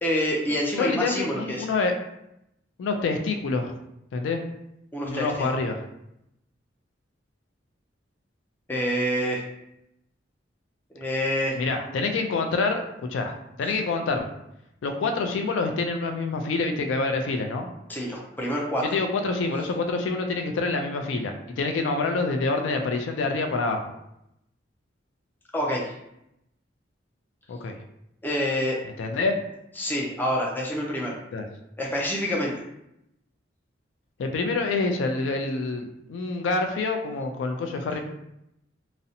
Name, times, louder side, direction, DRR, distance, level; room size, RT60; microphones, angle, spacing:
voice 1, 0.0-1.7 4.9-5.5 8.7-9.4 10.9-11.6 13.6-13.8 17.9-19.0 25.5-25.9 28.2-28.8 29.8-31.2 31.8-32.6, equal, 10° left, -2 dB, 0.4 m, -27 dB
voice 2, 0.8-1.9 2.8-3.7 4.1-4.4 5.1-5.8 11.5-12.8 13.1-14.3 14.8-17.7 18.9-23.9 27.5-27.8 28.8-29.4 31.3-31.4 34.2-38.0, left 3 dB, 75° left, 5 dB, 0.3 m, -27 dB
2.6 x 2.0 x 2.6 m, 0.82 s
head